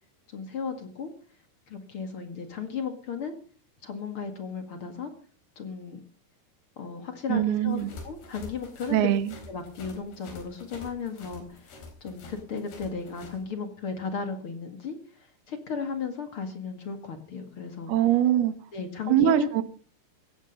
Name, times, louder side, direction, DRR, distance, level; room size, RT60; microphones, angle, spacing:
voice 1, 0.3-1.1 1.7-3.3 3.8-5.1 5.6-6.0 6.8-9.1 9.5-17.9 18.7-19.5, left 6 dB, 40° left, 7 dB, 2.2 m, -35 dB
voice 2, 7.3-7.9 8.9-9.3 17.9-18.5 19.1-19.6, right 12 dB, 75° right, 12 dB, 3.2 m, -22 dB
sound 1, 7.7-13.4, left 3 dB, 80° left, 6.1 m, -46 dB
16.5 x 14.5 x 5.4 m, 0.41 s
omnidirectional pair, 4.6 m